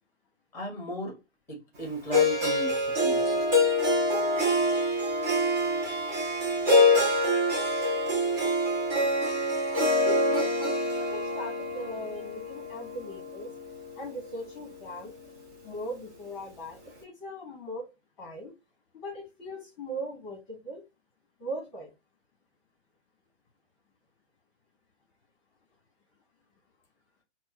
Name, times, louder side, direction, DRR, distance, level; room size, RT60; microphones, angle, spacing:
voice 1, 0.5-1.2 1.5-3.4, right 1 dB, 10° left, 1.4 m, -36 dB
Harp, 2.1-14.3, left 1 dB, 15° right, 0.5 m, -26 dB
voice 2, 10.0-10.5 11.0-13.5 13.9-15.1 15.6-17.9 18.2-18.5 18.9-20.8 21.4-21.9, equal, 30° left, 1.2 m, -39 dB
4.2 x 2.1 x 2.8 m
hypercardioid pair, 140°, 35 cm